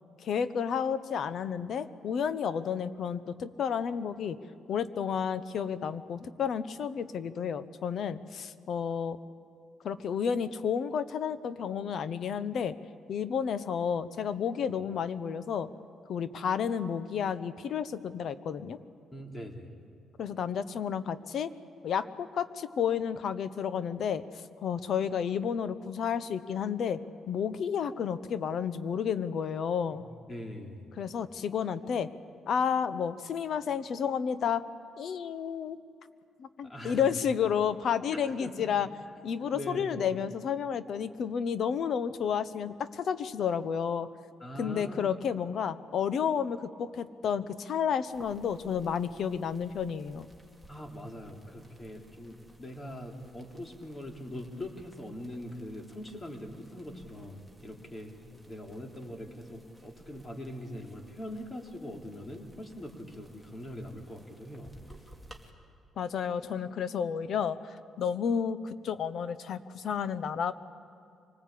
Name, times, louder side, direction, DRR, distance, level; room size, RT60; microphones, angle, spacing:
voice 1, 0.2-4.4 4.7-9.2 9.8-12.8 13.1-15.7 16.1-18.8 20.2-21.5 21.8-27.0 27.3-30.0 31.0-32.1 32.5-34.6 35.0-35.8 36.4-38.9 39.2-44.1 44.6-50.3 66.0-70.5, left 7 dB, 65° left, 14 dB, 1.0 m, -31 dB
voice 2, 19.1-19.7 29.9-30.0 30.3-30.9 36.6-37.1 38.1-38.7 39.3-40.2 44.4-45.2 50.7-58.1 58.5-64.7, left 1 dB, 25° left, 2 dB, 3.5 m, -42 dB
sound 1, 48.1-65.5, right 1 dB, 10° left, 2.6 m, -57 dB
25.5 x 19.5 x 8.6 m, 2.4 s
cardioid pair, 90°, 0 cm